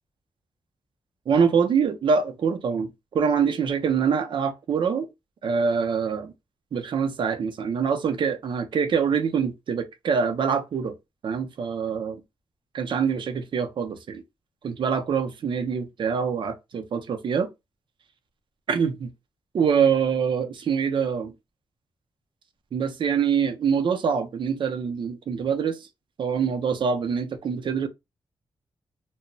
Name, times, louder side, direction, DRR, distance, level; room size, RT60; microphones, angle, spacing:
voice 1, 1.3-5.1 5.4-6.3 6.7-11.0 11.2-12.2 12.7-14.2 14.6-17.5 18.7-19.1 19.5-21.3 22.7-25.8 26.2-27.9, right 6 dB, 55° right, 0.5 m, -25 dB
2.2 x 2.0 x 3.7 m
wide cardioid pair, 170°, 10 cm